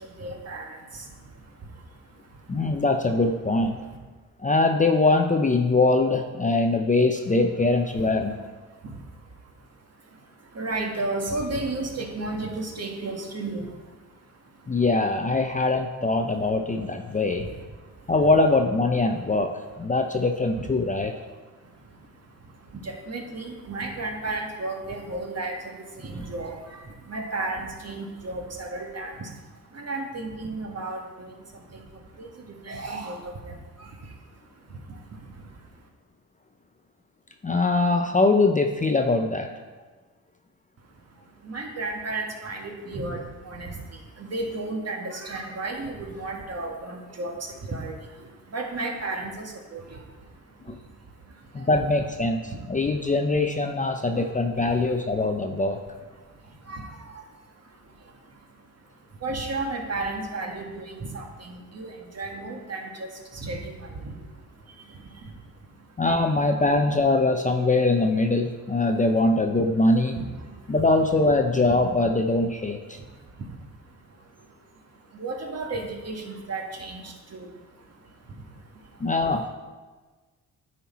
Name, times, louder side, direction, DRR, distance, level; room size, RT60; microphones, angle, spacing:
voice 1, 0.2-1.0 10.5-13.7 20.6-20.7 22.8-25.6 26.0-26.8 27.1-29.1 29.7-31.3 31.7-31.8 32.2-32.3 32.6-33.5 41.4-43.7 44.3-47.3 47.6-47.9 48.5-50.0 52.5-52.6 54.7-54.8 56.7-56.9 57.1-57.2 59.2-63.1 63.4-63.9 70.2-70.3 70.8-70.9 75.2-77.5, right 2 dB, 45° right, 2 dB, 1.5 m, -33 dB
voice 2, 2.5-3.8 4.4-8.4 14.7-17.5 18.1-21.1 37.4-39.5 50.7-50.8 51.5-55.8 66.0-70.2 70.7-73.0 79.0-79.5, left 2 dB, 20° left, 5 dB, 0.6 m, -22 dB
9.1 x 4.4 x 4.2 m, 1.3 s
cardioid pair, 65°, 37 cm